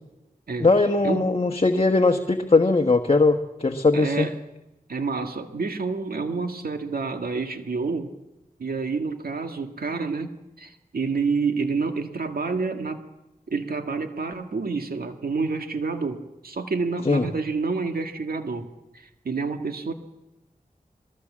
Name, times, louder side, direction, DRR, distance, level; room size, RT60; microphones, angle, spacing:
voice 1, 0.6-4.3 17.0-17.3, left 3 dB, 40° left, 4 dB, 1.3 m, -20 dB
voice 2, 3.9-4.4 4.9-8.1 8.6-13.0 13.5-19.9, right 4 dB, 80° right, 6 dB, 1.8 m, -28 dB
22.0 x 22.0 x 7.4 m, 1.0 s
wide cardioid pair, 55°, 15 cm